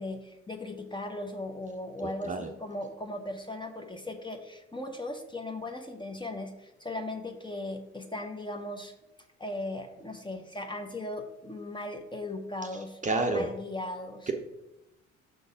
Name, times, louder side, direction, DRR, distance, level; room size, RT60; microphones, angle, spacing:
voice 1, 0.0-8.9 9.4-13.0 13.3-14.3, left 1 dB, 10° left, 4 dB, 0.8 m, -38 dB
voice 2, 2.0-2.5 13.0-13.5 14.3-14.4, right 3 dB, 20° right, 3 dB, 0.7 m, -29 dB
6.3 x 3.9 x 5.0 m, 0.95 s
figure-of-eight pair, 50°, 38 cm